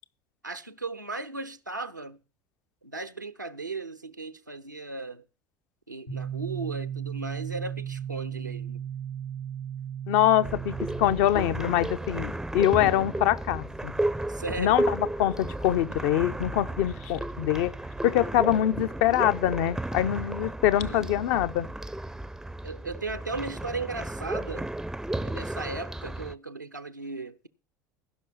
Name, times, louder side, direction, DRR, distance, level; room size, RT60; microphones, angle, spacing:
voice 1, 0.4-2.2 2.8-5.2 5.9-8.8 14.3-14.8 20.9-21.1 22.6-24.7 25.2-27.5, right 3 dB, 90° right, 0.7 m, -36 dB
sound 1, 6.1-19.7, right 8 dB, 80° left, 3.5 m, -39 dB
voice 2, 10.1-13.9 14.6-17.7 18.0-21.7, left 12 dB, 55° left, 0.9 m, -24 dB
sound 2, 10.4-26.3, right 1 dB, 5° right, 0.6 m, -33 dB
15.5 x 6.2 x 7.3 m
figure-of-eight pair, 70°, 10 cm